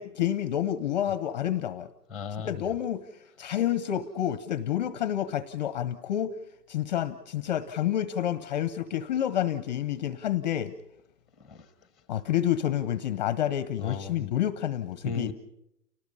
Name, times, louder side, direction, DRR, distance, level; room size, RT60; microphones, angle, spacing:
voice 1, 0.0-1.9 2.3-3.0 3.4-6.3 6.7-10.7 12.1-15.3, left 11 dB, 25° left, 0.8 m, -29 dB
voice 2, 2.1-2.7 11.4-11.7 13.8-14.3 15.0-15.3, left 5 dB, ahead, 1.1 m, -36 dB
30.0 x 19.5 x 5.5 m
hypercardioid pair, 165°, 48 cm